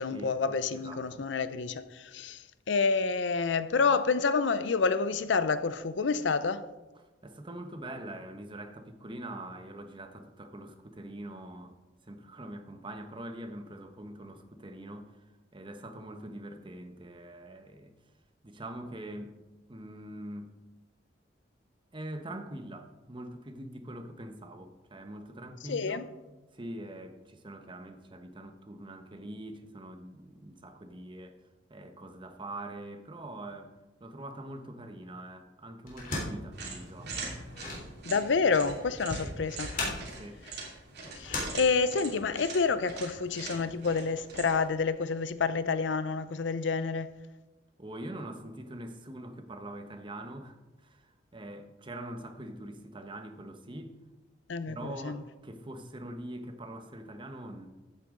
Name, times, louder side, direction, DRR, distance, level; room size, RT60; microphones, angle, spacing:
voice 1, 0.0-6.7 25.7-26.0 38.1-40.1 41.2-47.1 54.5-55.2, left 4 dB, 70° left, 0.6 m, -29 dB
voice 2, 0.7-1.3 7.2-11.7 12.1-17.9 18.4-19.4 19.7-20.5 21.9-26.0 26.5-31.4 31.7-33.7 34.0-37.1 39.2-39.3 40.0-40.4 47.8-54.0 54.7-57.7, right 1 dB, 25° right, 1.0 m, -43 dB
sound 1, 35.8-42.2, left 2 dB, 45° left, 3.5 m, -39 dB
sound 2, 36.5-44.7, right 3 dB, 60° right, 2.7 m, -42 dB
14.5 x 8.5 x 3.8 m
head